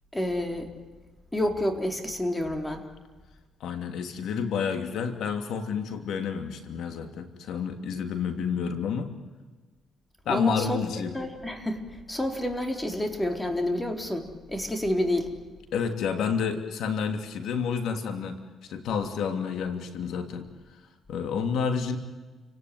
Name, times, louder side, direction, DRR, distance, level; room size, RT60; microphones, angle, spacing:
voice 1, 0.1-0.7 1.3-2.9 10.3-10.8 11.1-15.3, left 1 dB, 10° left, 4 dB, 4.0 m, -29 dB
voice 2, 3.6-9.1 10.2-11.2 15.7-18.4 18.7-20.5 21.1-22.0, left 6 dB, 75° left, 6 dB, 2.9 m, -29 dB
29.5 x 18.0 x 9.5 m, 1.3 s
cardioid pair, 90°, 0 cm